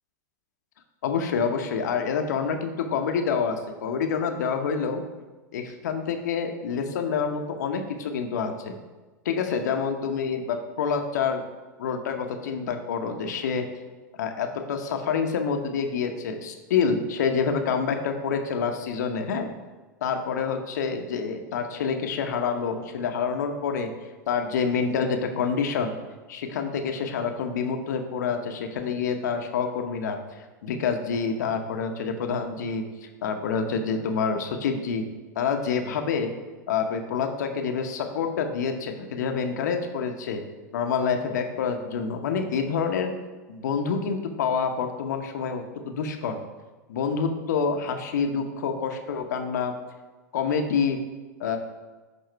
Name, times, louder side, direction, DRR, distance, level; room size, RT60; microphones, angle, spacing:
voice 1, 1.0-5.0 5.5-8.7 9.3-11.4 11.8-13.6 14.2-19.5 20.0-23.9 24.3-26.0 26.3-30.2 30.6-32.8 33.2-35.1 35.3-36.3 36.7-40.4 40.7-43.1 43.5-46.4 46.9-49.7 50.3-51.0 51.4-51.6, left 6 dB, 70° left, 5 dB, 1.0 m, -27 dB
10.5 x 3.6 x 4.6 m, 1.3 s
hypercardioid pair, 90°, 10 cm